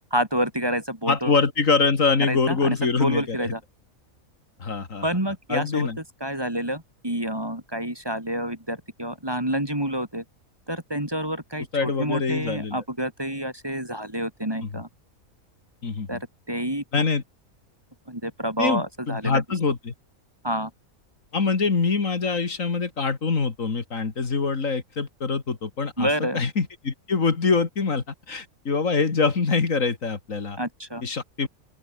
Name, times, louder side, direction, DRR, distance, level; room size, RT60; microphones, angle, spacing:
voice 1, 0.1-1.4 2.2-3.6 5.0-5.9 6.2-10.2 10.7-14.9 16.1-16.2 16.5-16.8 18.1-19.4 20.4-20.7 26.0-26.4 30.6-31.0, equal, 15° right, 2.9 m, -28 dB
voice 2, 1.1-3.5 4.6-5.1 5.5-6.0 11.7-12.8 14.6-14.7 15.8-16.2 16.9-17.2 18.6-19.9 21.3-30.6 31.0-31.5, left 4 dB, 65° left, 2.6 m, -24 dB
open air
omnidirectional pair, 1.5 m